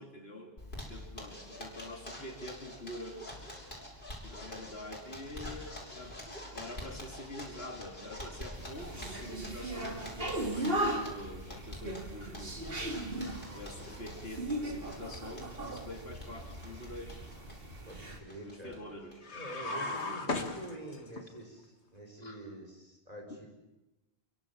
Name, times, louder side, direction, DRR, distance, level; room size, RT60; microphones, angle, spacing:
voice 1, 0.0-3.3 4.2-6.2 6.5-10.0 10.5-12.6 13.5-17.3 18.4-19.3 19.7-20.4 22.2-22.4, left 1 dB, 65° left, 3 dB, 3.2 m, -46 dB
Zipper (clothing), 0.6-18.8 19.1-19.2 19.5-19.6 19.9-20.4, left 1 dB, 50° left, 6.8 m, -47 dB
sound 1, 8.5-18.2, right 1 dB, 60° right, 2.9 m, -38 dB
voice 2, 17.9-18.8 19.3-23.5, right 1 dB, 35° right, 1 dB, 5.5 m, -46 dB
sound 2, 19.2-21.2, left 2 dB, 85° left, 2.3 m, -36 dB
27.5 x 23.5 x 7.4 m, 1.0 s
omnidirectional pair, 1.1 m